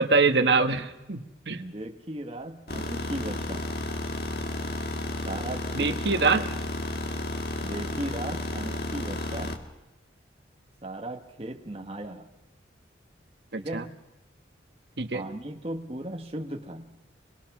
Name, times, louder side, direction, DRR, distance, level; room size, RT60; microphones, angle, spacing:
voice 1, 0.0-1.6 5.7-6.4 13.5-13.8 15.0-15.2, right 4 dB, 65° right, 6 dB, 1.3 m, -24 dB
voice 2, 1.5-3.7 5.2-6.5 7.6-9.6 10.8-12.3 13.6-14.0 15.1-17.0, right 1 dB, 30° right, 3 dB, 1.4 m, -37 dB
sound 1, 2.7-9.6, left 2 dB, 55° left, 1.8 m, -32 dB
24.0 x 21.5 x 6.1 m, 1.0 s
head